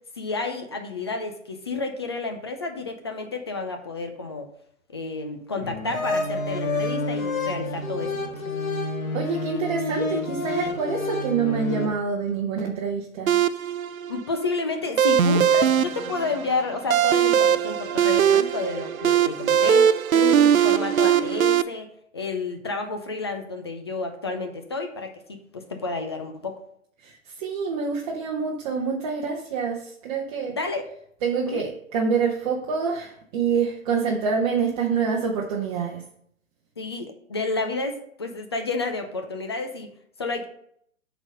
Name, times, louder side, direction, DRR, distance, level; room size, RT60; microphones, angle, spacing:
voice 1, 0.2-4.5 4.9-8.1 14.1-21.9 22.1-26.6 30.5-30.8 31.5-31.6 36.8-39.9 40.2-40.4, left 3 dB, 20° left, 5 dB, 0.4 m, -30 dB
sound 1, 5.6-11.9, left 2 dB, 70° left, 1.7 m, -28 dB
voice 2, 9.1-13.3 27.0-30.5 31.2-36.0, right 5 dB, 30° right, -1 dB, 0.9 m, -26 dB
sound 2, 13.3-21.6, right 9 dB, 80° right, 0.6 m, -20 dB
7.8 x 4.1 x 5.3 m, 0.68 s
figure-of-eight pair, 135°, 41 cm